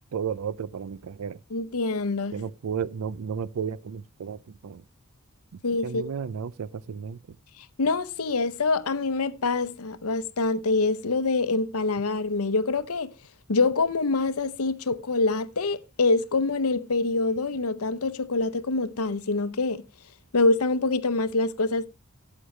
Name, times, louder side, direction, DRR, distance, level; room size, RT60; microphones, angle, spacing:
voice 1, 0.1-1.4 2.3-4.8 5.8-7.4, right 7 dB, 85° right, 0.4 m, -33 dB
voice 2, 1.5-2.4 5.6-6.0 7.6-13.1 13.5-19.8 20.3-21.9, left 3 dB, 80° left, 0.8 m, -25 dB
12.5 x 8.4 x 3.2 m
head